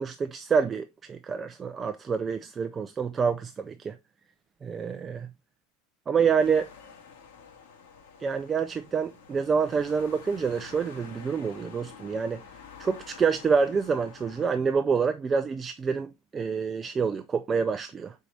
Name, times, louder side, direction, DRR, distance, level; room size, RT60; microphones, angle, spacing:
voice 1, 0.0-4.0 4.6-5.3 6.1-6.7 8.2-12.4 12.8-18.1, right 6 dB, 15° right, 0.4 m, -27 dB
sound 1, 6.4-14.5, left 6 dB, 75° left, 1.9 m, -49 dB
6.4 x 4.5 x 4.0 m
supercardioid pair, 170°, 0 cm